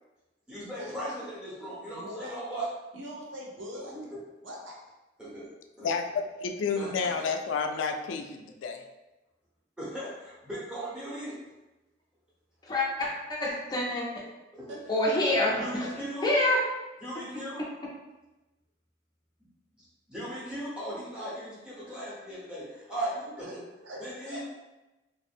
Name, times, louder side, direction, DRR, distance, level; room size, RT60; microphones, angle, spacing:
voice 1, 0.5-2.7 3.7-4.0 5.2-5.5 5.8-5.9 6.7-7.3 9.8-11.4 14.5-14.7 15.6-16.3 17.0-17.6 20.1-23.6 24.0-24.4, right 1 dB, 5° right, -10 dB, 0.9 m, -38 dB
voice 2, 1.9-2.4 2.9-3.9 4.4-4.8 14.7-14.8 15.8-16.0 23.5-23.6 23.8-24.4, equal, 85° right, -1 dB, 0.6 m, -42 dB
voice 3, 5.8-8.8, left 5 dB, 85° left, 5 dB, 0.3 m, -30 dB
voice 4, 12.6-14.2 14.9-15.9 16.2-16.6, left 1 dB, 20° left, -4 dB, 0.4 m, -27 dB
2.5 x 2.0 x 3.3 m, 1.0 s
head